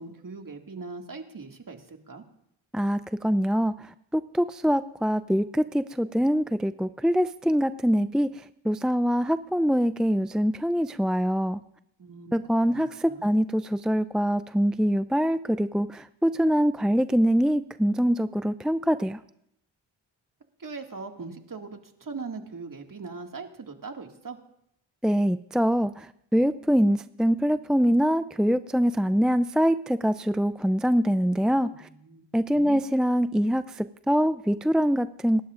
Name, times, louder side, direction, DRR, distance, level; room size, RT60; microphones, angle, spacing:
voice 1, 0.0-2.2 12.0-12.3 12.7-12.8 13.1-13.2 20.6-24.4 31.7-32.8, right 4 dB, 45° right, 3 dB, 2.2 m, -40 dB
voice 2, 2.7-8.3 8.6-11.6 12.3-19.2 25.0-31.9 32.3-35.4, equal, ahead, 12 dB, 0.4 m, -24 dB
29.0 x 12.0 x 2.5 m, 0.76 s
supercardioid pair, 45°, 46 cm